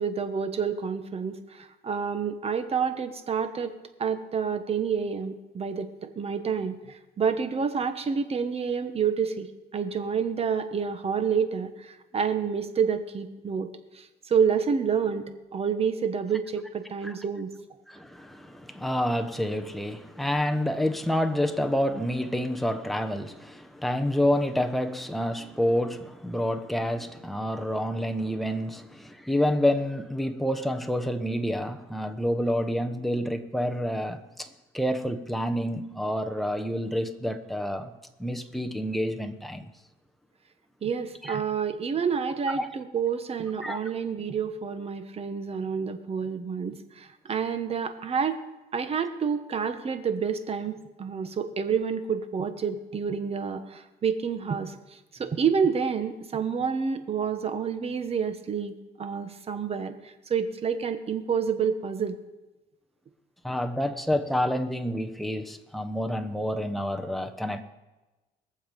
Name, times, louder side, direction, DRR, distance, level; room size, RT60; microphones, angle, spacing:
voice 1, 0.0-3.7 4.0-9.5 9.7-13.7 13.9-15.2 15.5-17.5 40.8-48.4 48.7-58.7 59.0-62.2, right 6 dB, 35° right, 9 dB, 1.3 m, -28 dB
voice 2, 17.9-37.9 38.2-39.7 41.2-41.4 42.5-42.7 43.6-43.8 63.4-67.6, equal, ahead, 5 dB, 1.1 m, -28 dB
21.5 x 7.4 x 5.3 m, 1.1 s
cardioid pair, 110°, 17 cm